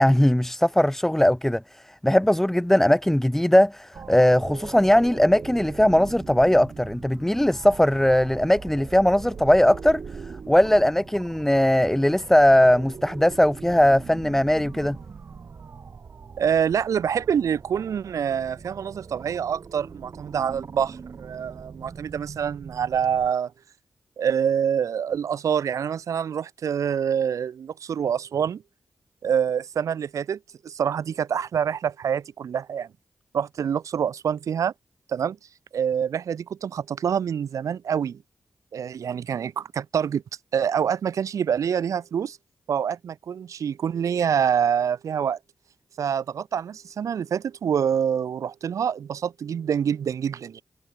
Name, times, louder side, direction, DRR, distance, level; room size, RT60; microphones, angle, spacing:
voice 1, 0.0-10.0 10.5-15.0, left 1 dB, 5° left, 0.5 m, -19 dB
sound 1, 3.9-23.3, right 5 dB, 60° right, 1.1 m, -41 dB
voice 2, 16.4-23.5 24.2-28.6 29.2-30.4 30.6-32.9 33.3-34.7 35.1-35.4 35.7-38.2 38.7-40.2 40.5-42.4 42.7-45.4 46.0-50.6, right 8 dB, 80° right, 0.6 m, -26 dB
cardioid pair, 50°, 5 cm